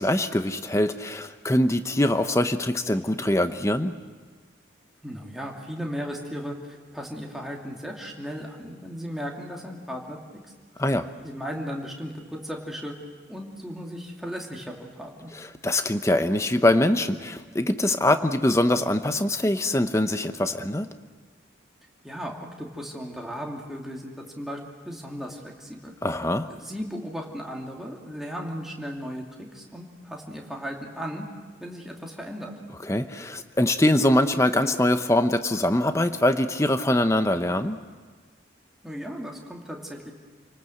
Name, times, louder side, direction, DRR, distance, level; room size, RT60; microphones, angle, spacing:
voice 1, 0.0-3.9 10.8-11.1 15.3-20.9 26.0-26.5 32.9-37.8, left 1 dB, 15° left, 9 dB, 0.8 m, -23 dB
voice 2, 5.0-10.2 11.2-12.9 13.3-15.3 22.0-24.6 24.8-25.9 26.5-31.3 31.6-32.5 38.8-40.1, equal, ahead, -1 dB, 2.5 m, -36 dB
29.5 x 19.5 x 7.8 m, 1.4 s
head